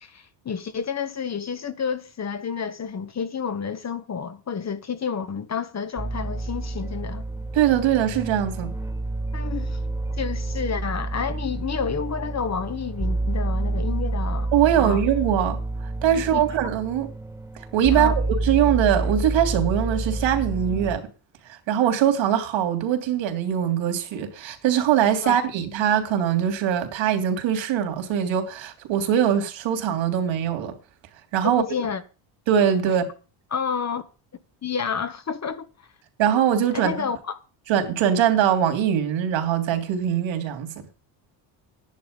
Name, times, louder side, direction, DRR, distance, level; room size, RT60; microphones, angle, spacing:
voice 1, 0.0-7.2 9.3-9.8 10.2-15.0 16.3-16.4 17.9-18.1 25.2-25.4 31.4-32.0 33.5-34.0 34.6-35.7 36.7-37.4, left 6 dB, 35° left, 1.4 m, -30 dB
sound 1, 6.0-21.0, right 2 dB, 5° right, 2.0 m, -29 dB
voice 2, 7.5-8.7 14.5-15.6 16.0-17.1 17.7-18.1 18.4-21.0 21.5-30.7 31.3-31.6 32.5-33.0 36.2-37.1 37.7-40.7, right 9 dB, 65° right, 3.3 m, -22 dB
11.5 x 10.5 x 5.3 m
cardioid pair, 100°, 48 cm